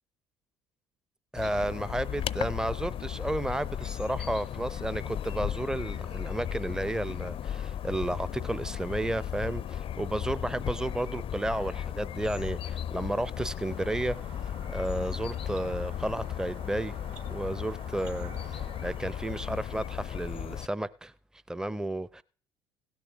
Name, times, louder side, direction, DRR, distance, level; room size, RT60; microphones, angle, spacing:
voice 1, 1.3-14.2 14.7-17.0 17.3-21.1 21.5-22.2, right 1 dB, 5° right, 0.6 m, -32 dB
sound 1, 1.4-20.7, left 10 dB, 40° left, 0.5 m, -36 dB
sound 2, 13.7-19.4, right 7 dB, 55° right, 1.8 m, -51 dB
16.5 x 7.0 x 6.2 m
hypercardioid pair, 60°, 14 cm